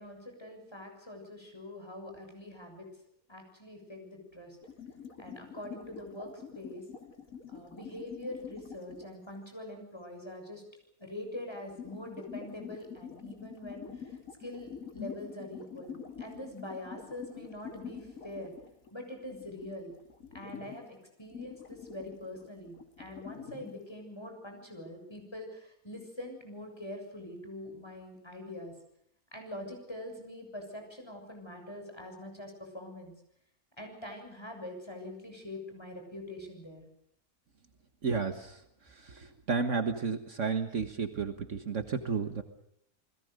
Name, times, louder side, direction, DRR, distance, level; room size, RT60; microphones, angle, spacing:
voice 1, 0.0-2.9 3.3-4.6 5.2-6.8 7.5-10.6 11.0-18.5 18.9-19.9 20.3-28.7 29.3-33.1 33.8-36.8, left 1 dB, 15° left, 3 dB, 7.1 m, -44 dB
sound 1, 4.6-9.1 11.4-19.0 19.2-20.9 21.3-23.8, left 7 dB, 65° left, 2.8 m, -46 dB
voice 2, 38.0-38.6 38.9-42.4, right 5 dB, 55° right, 8 dB, 1.8 m, -32 dB
29.0 x 21.0 x 6.6 m, 0.73 s
omnidirectional pair, 1.5 m